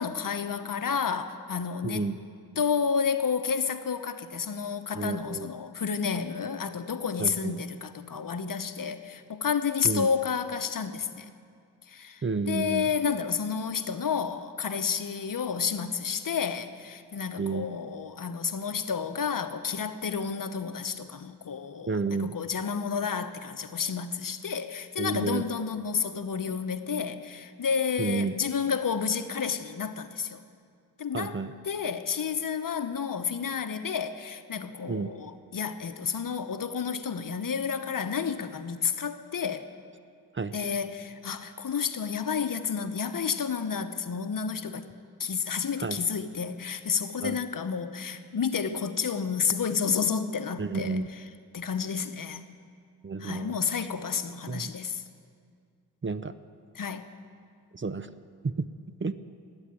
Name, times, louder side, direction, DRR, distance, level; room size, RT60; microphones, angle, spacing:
voice 1, 0.0-2.0 2.6-11.3 11.9-30.4 31.0-31.4 31.6-39.7 40.5-44.8 45.2-51.0 51.5-52.5 53.2-55.0 56.7-57.0, left 6 dB, 55° left, 1.0 m, -30 dB
voice 2, 1.8-2.2 4.9-5.5 7.2-7.6 9.8-10.1 12.2-12.9 17.4-17.7 21.9-22.3 25.0-25.4 28.0-28.3 31.1-31.5 34.9-35.1 40.3-40.5 45.8-46.0 47.2-47.4 50.6-51.1 53.0-53.6 54.5-54.7 56.0-56.3 57.7-58.1 58.4-58.7 59.0-59.1, right 4 dB, 30° right, 0.7 m, -30 dB
14.5 x 9.9 x 9.0 m
cardioid pair, 40°, 39 cm